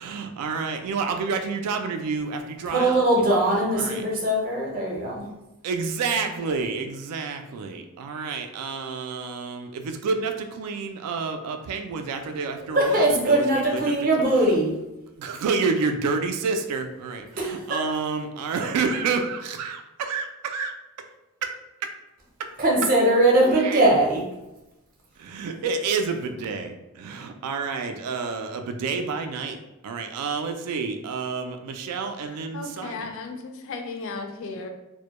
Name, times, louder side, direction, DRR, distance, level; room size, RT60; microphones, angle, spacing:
voice 1, 0.0-3.0 3.7-4.0 5.6-13.9 15.2-20.7 21.4-21.5 21.8-21.9 23.4-23.8 25.2-29.6 29.8-33.1, right 4 dB, 85° right, 11 dB, 0.3 m, -29 dB
voice 2, 2.7-5.2 12.7-14.7 17.4-17.8 22.6-24.2, right 1 dB, 40° right, -2 dB, 0.5 m, -21 dB
voice 3, 32.5-34.7, left 3 dB, 60° left, 4 dB, 0.3 m, -35 dB
2.1 x 2.1 x 2.9 m, 0.97 s
head